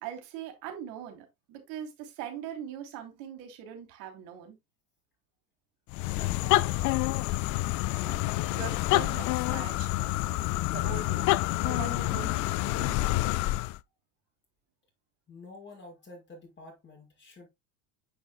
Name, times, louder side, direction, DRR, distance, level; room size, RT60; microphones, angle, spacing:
voice 1, 0.0-4.6 8.0-8.2 8.5-13.5, right 8 dB, 65° right, 3.1 m, -42 dB
sound 1, 5.9-13.8, left 18 dB, 45° left, 0.4 m, -28 dB
voice 2, 6.2-7.0 15.3-17.5, left 2 dB, 25° left, 5.9 m, -48 dB
9.7 x 6.3 x 2.2 m
hypercardioid pair, 90°, 42 cm